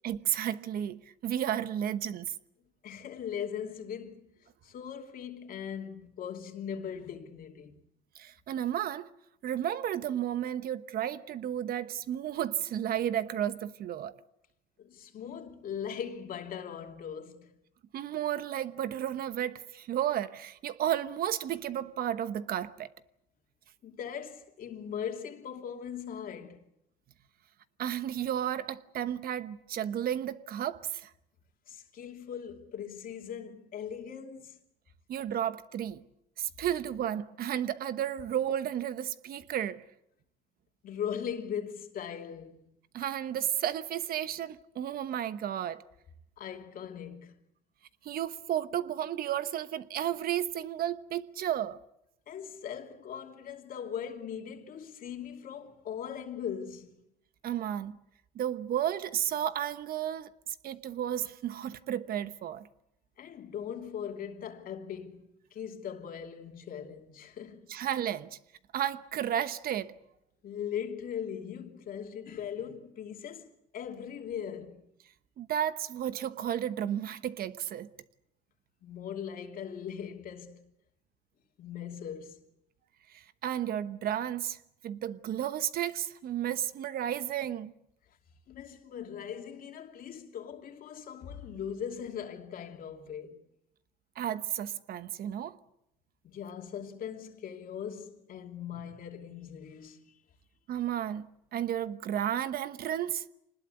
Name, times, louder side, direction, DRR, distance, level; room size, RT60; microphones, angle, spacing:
voice 1, 0.0-2.3 8.2-9.1 9.4-14.1 17.9-22.9 27.8-31.1 35.1-36.0 36.4-39.8 42.9-45.8 48.0-51.8 57.4-58.0 58.3-60.3 60.6-62.7 67.7-68.4 68.7-69.9 75.4-77.9 83.1-84.6 84.8-87.7 94.2-95.6 100.7-103.3, right 10 dB, 60° right, 1.1 m, -33 dB
voice 2, 2.8-4.3 4.6-7.8 14.8-17.5 23.8-26.6 31.7-34.6 40.8-42.6 46.4-47.4 52.3-57.0 63.2-67.7 70.4-74.8 78.8-80.7 81.6-82.4 88.5-93.4 96.2-100.1, left 8 dB, 60° left, 2.9 m, -40 dB
25.5 x 20.0 x 8.3 m
cardioid pair, 110°, 17 cm